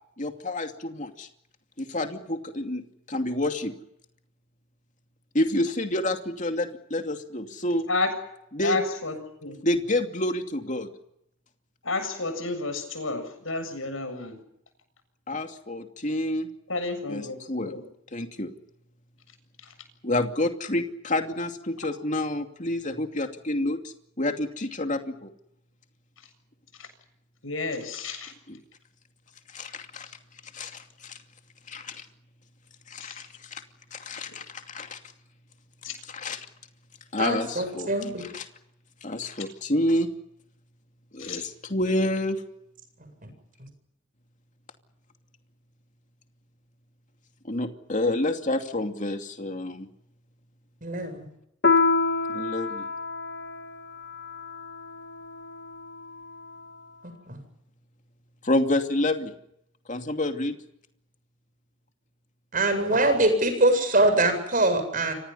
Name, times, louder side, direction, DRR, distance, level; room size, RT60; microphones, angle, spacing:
voice 1, 0.2-1.3 1.8-3.7 5.3-7.9 8.5-8.8 9.6-10.9 15.3-16.5 17.1-17.7 18.1-18.5 20.0-25.3 28.5-28.6 29.5-30.1 30.5-31.2 31.7-32.0 32.9-33.6 33.9-35.0 36.1-36.5 37.1-37.9 38.2-38.5 39.0-40.1 41.1-42.4 47.5-49.9 52.3-52.9 58.4-59.3 59.9-60.6, left 1 dB, 40° left, 5 dB, 2.6 m, -28 dB
voice 2, 8.6-9.6 11.8-14.4 16.7-17.8 26.8-26.9 27.4-28.3 33.0-33.2 35.8-36.0 41.2-41.4, left 3 dB, 85° left, 9 dB, 7.4 m, -31 dB
voice 3, 37.2-38.3 43.2-43.3 50.8-51.2 57.3-57.4 62.5-65.1, right 2 dB, 45° right, 8 dB, 8.0 m, -23 dB
Piano, 51.6-56.6, left 4 dB, 55° left, 1.7 m, -28 dB
30.0 x 26.0 x 5.6 m, 0.77 s
head